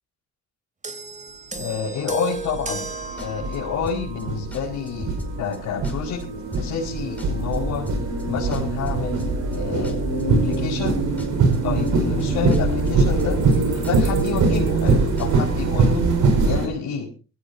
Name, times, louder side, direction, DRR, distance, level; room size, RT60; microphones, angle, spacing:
sound 1, 0.8-4.4 5.3-5.5, right 4 dB, 25° right, 3.2 m, -34 dB
voice 1, 1.6-2.9 3.2-6.2 6.5-7.8 8.2-10.0 10.4-11.0 11.6-13.4 13.7-16.1 16.4-17.1, left 6 dB, 85° left, -3 dB, 4.7 m, -29 dB
sound 2, 1.6-1.7 2.4-16.7, right 3 dB, 75° right, 5.3 m, -22 dB
sound 3, 3.2-3.6 3.8-4.2 4.5-4.6 4.9-5.6 5.8-6.2 6.5-6.9 7.2-8.9 9.2-9.6 9.8-10.9 11.2-11.6 11.8-12.2 12.5-12.6 12.9-13.6 13.8-14.2 14.5-14.9 15.2-15.3, left 2 dB, 5° left, 5.3 m, -35 dB
22.5 x 16.0 x 2.7 m, 0.34 s
cardioid pair, 90°, 30 cm